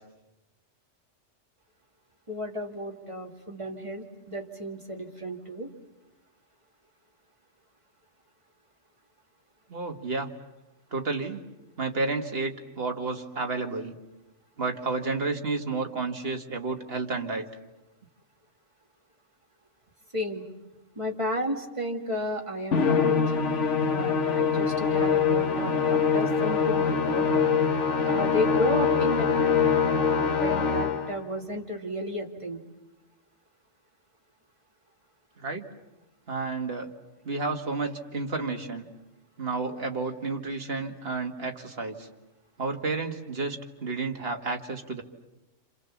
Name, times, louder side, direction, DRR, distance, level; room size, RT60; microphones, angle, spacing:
voice 1, 2.3-5.7 20.1-20.5 21.0-23.5 23.9-27.5 28.0-29.6 29.9-32.6, equal, 25° right, 1 dB, 2.4 m, -33 dB
voice 2, 9.7-10.3 10.9-11.4 11.8-13.9 14.6-17.5 35.4-35.7 36.3-36.9 37.2-38.8 39.4-42.1 42.6-45.0, right 3 dB, 50° right, 3 dB, 2.2 m, -31 dB
Musical instrument, 22.7-31.2, left 6 dB, 75° left, 1.5 m, -24 dB
28.0 x 27.5 x 7.2 m, 1.0 s
omnidirectional pair, 1.3 m